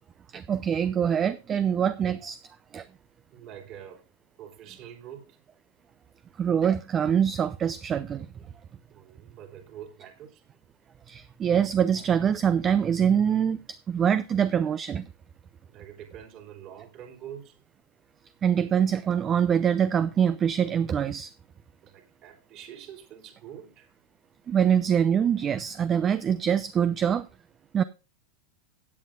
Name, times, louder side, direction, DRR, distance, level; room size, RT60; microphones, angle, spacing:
voice 1, 0.3-2.4 2.7-2.8 6.4-8.3 11.1-15.1 18.4-21.3 24.5-27.3 27.7-27.8, right 8 dB, 25° right, 0.5 m, -24 dB
voice 2, 3.3-4.0 4.4-5.4 8.9-10.4 15.7-17.6 21.8-23.9, right 9 dB, 40° right, 3.0 m, -45 dB
16.0 x 9.1 x 2.6 m
figure-of-eight pair, 90°, 0 cm